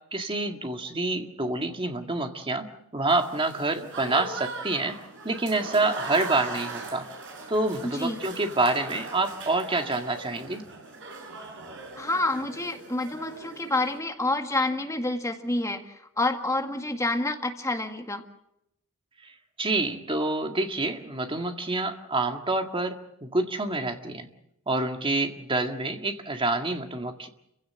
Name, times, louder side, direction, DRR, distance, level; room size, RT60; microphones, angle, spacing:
voice 1, 0.1-5.0 5.2-7.1 7.5-10.6 19.6-24.3 24.7-27.3, right 2 dB, 25° right, 5 dB, 1.9 m, -27 dB
Applause / Crowd, 3.1-14.0, right 3 dB, 60° right, 6.4 m, -40 dB
voice 2, 7.8-8.2 12.0-18.2, left 2 dB, 15° left, 5 dB, 1.9 m, -28 dB
29.5 x 16.5 x 7.7 m, 0.80 s
head